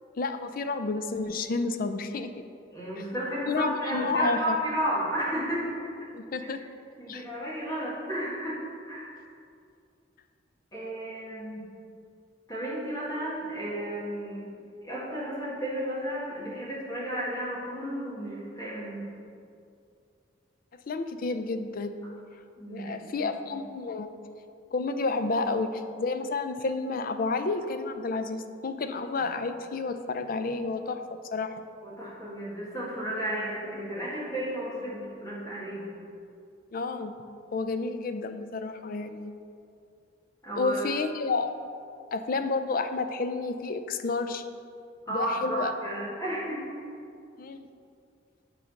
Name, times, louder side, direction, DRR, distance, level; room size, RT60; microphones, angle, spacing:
voice 1, 0.2-2.3 2.9-3.0 3.5-4.6 6.1-6.6 7.1-7.2 20.9-22.0 22.7-24.1 24.7-31.0 31.3-31.5 36.7-37.1 37.5-39.3 40.6-41.5 42.1-44.4 45.1-45.7 47.4-47.7, left 3 dB, 50° left, 9 dB, 0.5 m, -30 dB
voice 2, 2.7-5.8 7.0-8.6 8.8-9.1 10.7-11.7 12.5-14.5 14.8-19.1 22.6-23.6 31.8-35.8 40.4-40.9 45.1-46.6, right 1 dB, 20° left, -7 dB, 1.8 m, -33 dB
8.8 x 3.8 x 6.3 m, 2.4 s
head